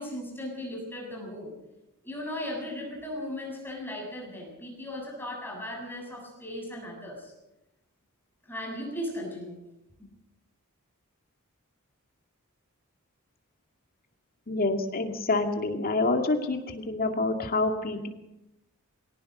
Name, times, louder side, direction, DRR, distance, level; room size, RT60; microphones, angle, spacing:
voice 1, 0.0-1.5 2.0-7.3 8.5-9.6 10.0-10.1, left 1 dB, 10° left, -1 dB, 7.3 m, -37 dB
voice 2, 14.5-18.1, left 2 dB, 45° left, 5 dB, 2.2 m, -27 dB
23.0 x 18.0 x 6.7 m, 0.94 s
head